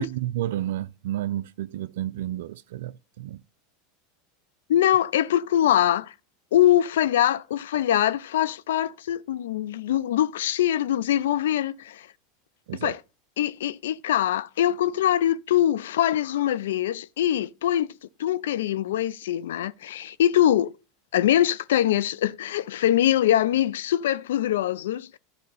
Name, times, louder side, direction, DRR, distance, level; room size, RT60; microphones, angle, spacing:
voice 1, 0.0-3.4 12.7-12.9, right 13 dB, 75° right, 0.4 m, -31 dB
voice 2, 4.7-6.1 6.5-12.1 12.7-13.0 13.4-17.9 18.2-20.7 21.1-25.2, left 11 dB, 80° left, 0.4 m, -23 dB
11.5 x 4.2 x 5.4 m
hypercardioid pair, 100°, 0 cm